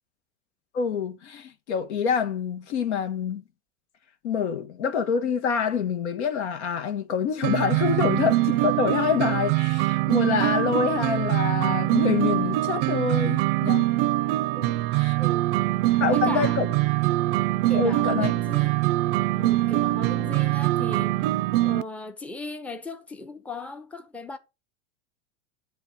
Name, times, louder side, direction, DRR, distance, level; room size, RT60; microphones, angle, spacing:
voice 1, 0.7-3.4 4.2-13.8 15.0-15.1 16.0-16.7 17.7-18.3, left 6 dB, 80° left, 1.1 m, -26 dB
sound 1, 7.4-21.8, right 17 dB, 60° right, 0.5 m, -23 dB
voice 2, 14.5-14.9 15.2-15.5 15.8-16.6 17.7-18.8 19.4-21.4 21.6-24.4, left 3 dB, 5° left, 0.6 m, -38 dB
8.0 x 3.2 x 5.8 m
hypercardioid pair, 100°, 33 cm